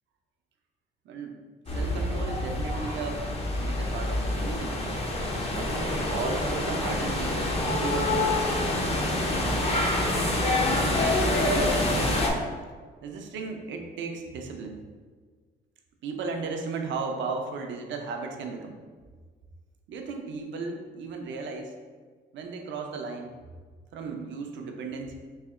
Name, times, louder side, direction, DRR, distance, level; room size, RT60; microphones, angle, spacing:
voice 1, 1.0-1.4 1.7-3.2 3.6-4.8 5.5-8.4 9.3-12.4 13.0-14.8 16.0-18.8 19.9-21.8 22.3-23.3 23.9-25.2, right 4 dB, 70° right, 3 dB, 0.6 m, -35 dB
sound 1, 1.7-12.3, left 1 dB, 30° left, 0.7 m, -26 dB
3.3 x 2.8 x 3.6 m, 1.5 s
cardioid pair, 90°, 20 cm